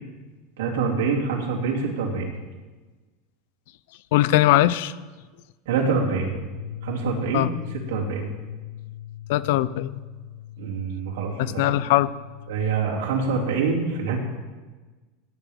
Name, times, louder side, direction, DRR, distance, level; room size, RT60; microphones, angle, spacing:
voice 1, 0.6-2.3 5.7-6.3 6.8-7.5 7.9-8.3 10.6-11.7 12.5-14.2, right 5 dB, 85° right, -2 dB, 2.8 m, -25 dB
voice 2, 4.1-4.9 7.3-7.5 9.3-10.0 11.4-12.1, left 15 dB, 70° left, 17 dB, 0.5 m, -20 dB
sound 1, 6.3-12.6, left 11 dB, 5° right, 3.9 m, -39 dB
16.5 x 9.3 x 3.6 m, 1.3 s
supercardioid pair, 145°, 0 cm